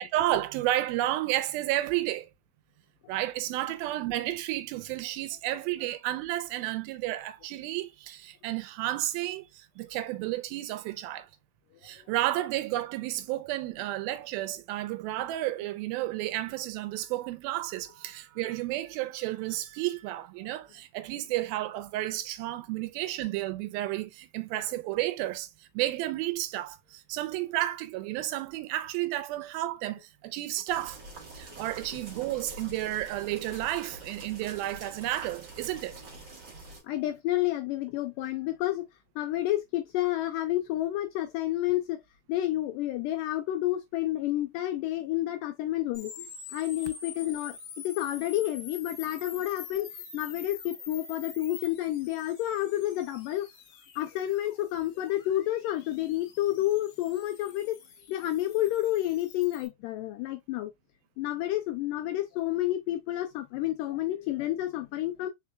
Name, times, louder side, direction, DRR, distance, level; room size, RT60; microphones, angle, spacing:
voice 1, 0.0-2.3 3.1-11.3 11.8-31.0 31.3-36.0, right 15 dB, 90° right, 2.4 m, -32 dB
sound 1, 30.7-36.8, right 2 dB, 50° right, 1.4 m, -46 dB
voice 2, 36.8-38.9 39.2-42.0 42.3-47.6 47.8-53.5 54.0-57.8 58.1-60.7 61.2-65.3, left 14 dB, 80° left, 2.0 m, -30 dB
sound 2, 45.9-59.7, left 6 dB, 65° left, 1.6 m, -47 dB
4.6 x 4.5 x 2.2 m
omnidirectional pair, 4.2 m